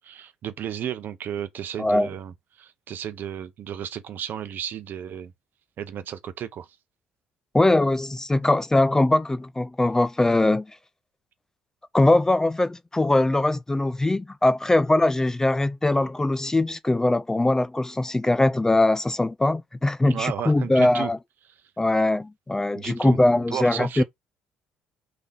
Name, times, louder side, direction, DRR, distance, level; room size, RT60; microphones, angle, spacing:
voice 1, 0.0-5.3 5.8-6.7 20.1-21.1 22.7-23.2 23.5-24.0, right 9 dB, 55° right, 0.7 m, -33 dB
voice 2, 1.8-2.1 7.5-10.8 11.9-21.2 21.8-24.0, left 2 dB, 15° left, 0.3 m, -21 dB
3.8 x 3.6 x 3.3 m
hypercardioid pair, 55°, 4 cm